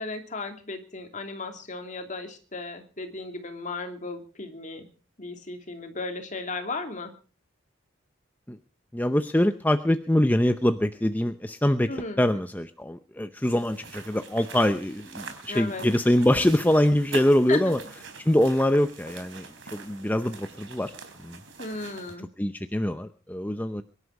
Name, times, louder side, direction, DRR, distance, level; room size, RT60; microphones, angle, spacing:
voice 1, 0.0-4.9 5.2-7.1 11.9-12.2 15.5-15.8 17.5-17.7 21.6-22.3, left 3 dB, 40° left, 5 dB, 2.8 m, -35 dB
voice 2, 8.9-11.9 12.2-17.8 18.2-19.4 19.7-20.9 21.2-21.4 22.4-23.8, left 1 dB, 10° left, 9 dB, 0.7 m, -24 dB
sound 1, 13.4-22.1, right 4 dB, 70° right, 3.6 m, -44 dB
23.0 x 11.5 x 4.7 m, 0.39 s
head